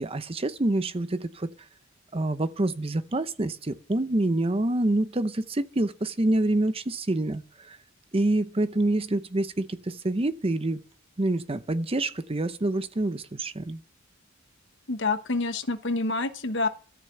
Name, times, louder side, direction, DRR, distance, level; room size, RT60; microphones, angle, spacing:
voice 1, 0.0-1.5 2.1-7.8 8.1-10.8 11.2-13.8, right 2 dB, 30° right, 0.7 m, -27 dB
voice 2, 14.9-16.7, left 3 dB, 60° left, 1.1 m, -27 dB
13.5 x 6.1 x 7.9 m
head